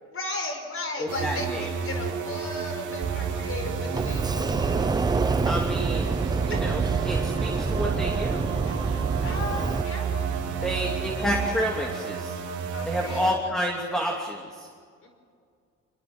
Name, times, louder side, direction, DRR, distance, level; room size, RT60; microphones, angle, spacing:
voice 1, 0.0-4.8 6.5-6.6 8.7-10.1 10.5-10.7 12.7-13.4 15.0-15.1, left 2 dB, 45° left, 4 dB, 5.2 m, -36 dB
voice 2, 1.0-1.7 5.5-6.1 6.4-8.5 10.6-12.4 12.9-14.7, equal, ahead, 0 dB, 3.0 m, -29 dB
sound 1, 1.1-13.3, right 6 dB, 75° right, 3.1 m, -32 dB
sound 2, 3.0-11.5, right 7 dB, 55° right, 4.1 m, -32 dB
Sliding door, 3.9-9.8, right 3 dB, 15° right, 0.5 m, -27 dB
24.0 x 21.5 x 6.4 m, 2.1 s
cardioid pair, 90°, 30 cm